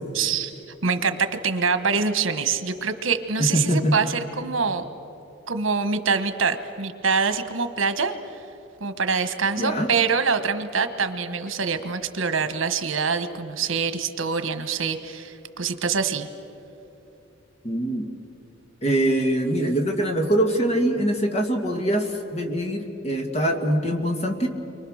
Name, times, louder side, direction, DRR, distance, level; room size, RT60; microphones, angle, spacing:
voice 1, 0.1-0.5 0.8-4.9 5.5-8.1 8.8-16.3, right 5 dB, 85° right, 9 dB, 1.3 m, -25 dB
voice 2, 3.4-3.9 9.6-9.9 17.6-18.1 18.8-24.5, right 1 dB, 35° left, 3 dB, 2.1 m, -23 dB
29.5 x 24.0 x 6.5 m, 2.9 s
head